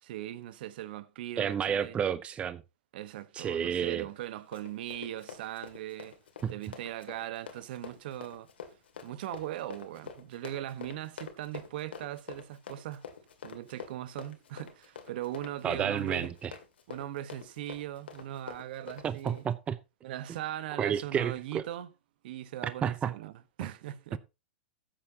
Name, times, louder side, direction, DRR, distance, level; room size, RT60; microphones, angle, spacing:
voice 1, 0.0-2.0 2.9-6.2 6.5-8.5 9.0-13.1 13.4-16.3 16.9-19.4 20.0-21.9 22.2-23.3 23.6-24.2, right 13 dB, 60° right, 1.1 m, -39 dB
voice 2, 1.4-2.6 3.3-4.0 6.4-6.5 15.6-16.5 19.0-19.8 20.8-21.6 22.6-23.1, right 8 dB, 20° right, 0.6 m, -31 dB
Run, 4.2-19.5, left 7 dB, 85° left, 2.4 m, -46 dB
14.0 x 9.0 x 2.8 m
hypercardioid pair, 125°, 6 cm